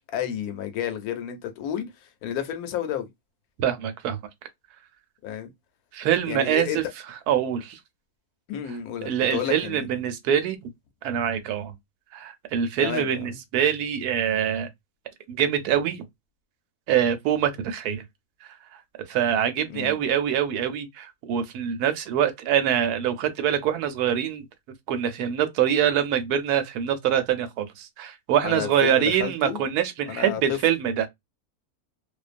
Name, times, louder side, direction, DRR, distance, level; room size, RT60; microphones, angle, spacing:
voice 1, 0.1-3.1 5.2-5.5 6.2-6.8 8.5-9.9 12.8-13.4 19.7-20.0 28.4-29.6 30.1-30.6, left 9 dB, 75° left, 1.1 m, -31 dB
voice 2, 3.6-4.2 5.9-6.8 7.3-7.8 9.0-10.7 11.0-11.8 12.1-14.7 15.3-16.0 16.9-18.0 18.4-18.5 19.1-24.4 24.9-31.1, right 9 dB, 85° right, 1.1 m, -24 dB
2.5 x 2.2 x 2.4 m
omnidirectional pair, 1.6 m